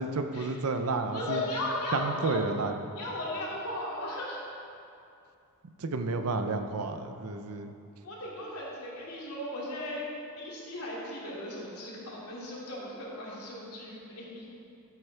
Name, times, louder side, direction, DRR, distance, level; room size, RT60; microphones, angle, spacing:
voice 1, 0.0-1.4 1.9-2.8 5.8-7.7, right 3 dB, 75° right, 7 dB, 0.6 m, -31 dB
voice 2, 1.1-2.4 3.0-4.4 8.0-10.0 10.4-14.5, left 1 dB, 90° left, -5 dB, 2.5 m, -36 dB
13.5 x 8.1 x 3.4 m, 2.5 s
head